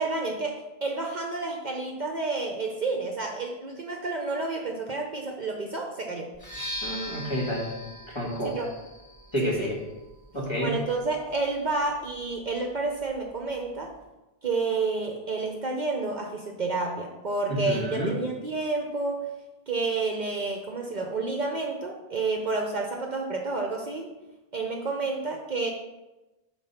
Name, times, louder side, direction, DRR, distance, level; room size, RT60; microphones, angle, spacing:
voice 1, 0.0-6.3 8.4-8.7 9.4-9.7 10.6-13.9 14.4-19.3 19.7-24.1 24.5-25.7, right 3 dB, 50° right, 1 dB, 0.8 m, -30 dB
sound 1, 6.3-14.1, equal, 45° left, 2.8 m, -42 dB
voice 2, 6.8-7.7 8.1-8.5 9.3-9.8 10.3-10.8 17.5-18.1, equal, 25° left, -4 dB, 1.8 m, -29 dB
6.1 x 4.3 x 5.4 m, 1.0 s
omnidirectional pair, 1.1 m